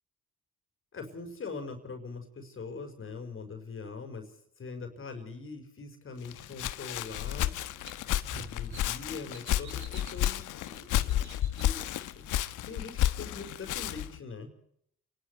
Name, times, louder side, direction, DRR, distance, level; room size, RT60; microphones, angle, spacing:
voice 1, 0.9-4.3 4.6-7.6 8.3-12.3 12.7-14.5, left 4 dB, 45° left, 5 dB, 5.6 m, -42 dB
Walk footsteps, 6.2-14.2, left 13 dB, 85° left, 1.3 m, -32 dB
sound 1, 7.2-13.4, right 5 dB, 70° right, 7.9 m, -52 dB
29.5 x 12.0 x 8.3 m, 0.73 s
cardioid pair, 90°, 30 cm